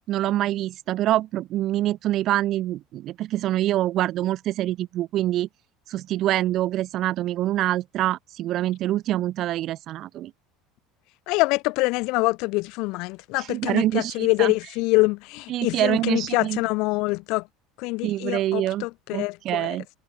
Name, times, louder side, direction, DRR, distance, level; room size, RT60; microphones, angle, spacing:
voice 1, 0.1-5.5 5.9-10.3 13.4-14.5 15.5-16.6 18.0-18.8 19.1-19.8, right 14 dB, 45° right, 0.6 m, -25 dB
voice 2, 11.3-17.4 17.8-19.8, left 25 dB, 55° left, 0.8 m, -25 dB
figure-of-eight pair, 70°, 0 cm